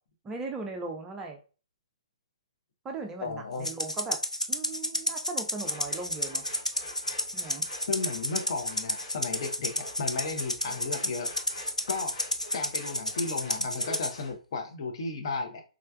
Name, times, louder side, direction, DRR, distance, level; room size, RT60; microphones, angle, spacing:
voice 1, 0.2-1.4 2.8-4.2 4.5-6.4 7.3-7.6, right 3 dB, 10° right, 2 dB, 0.4 m, -38 dB
voice 2, 3.2-3.7 7.9-11.3 11.9-12.1 12.5-15.6, left 4 dB, 45° left, 4 dB, 0.6 m, -34 dB
Rattle (instrument), 3.6-14.1, left 1 dB, 90° left, 0.5 m, -31 dB
sound 1, 5.6-14.4, left 2 dB, 60° left, 1.3 m, -47 dB
3.6 x 3.3 x 2.2 m, 0.36 s
figure-of-eight pair, 125°, 4 cm